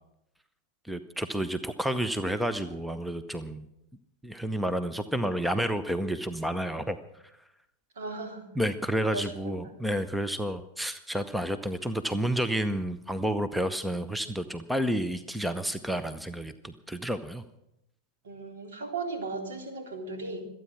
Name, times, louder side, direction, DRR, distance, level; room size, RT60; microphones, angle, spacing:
voice 1, 0.9-3.7 4.2-7.0 8.6-17.4, right 1 dB, 5° right, 11 dB, 0.7 m, -30 dB
voice 2, 8.0-8.5 9.1-9.7 18.2-20.5, right 3 dB, 60° right, 3 dB, 3.6 m, -36 dB
25.0 x 9.2 x 6.2 m, 0.86 s
figure-of-eight pair, 90°, 0 cm